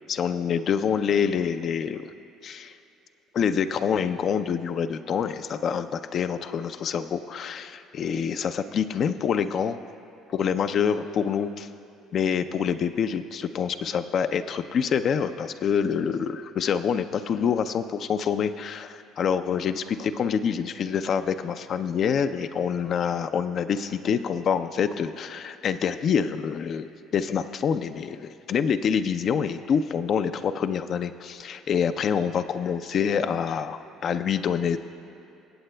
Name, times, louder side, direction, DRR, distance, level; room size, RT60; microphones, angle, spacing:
voice 1, 0.1-2.1 2.4-2.7 3.3-9.8 10.3-11.7 12.1-34.8, left 7 dB, 55° left, 10 dB, 0.4 m, -26 dB
23.0 x 8.0 x 2.2 m, 2.9 s
hypercardioid pair, 65°, 0 cm